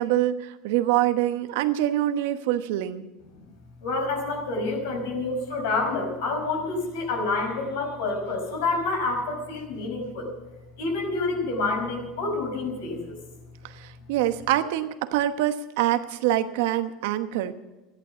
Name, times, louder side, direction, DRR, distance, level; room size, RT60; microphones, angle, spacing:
voice 1, 0.0-3.1 13.6-17.5, right 13 dB, 75° right, 10 dB, 1.0 m, -25 dB
voice 2, 3.8-10.3 10.8-13.2, left 3 dB, 80° left, 3 dB, 5.2 m, -28 dB
14.0 x 11.5 x 6.9 m, 1.1 s
supercardioid pair, 105°, 0 cm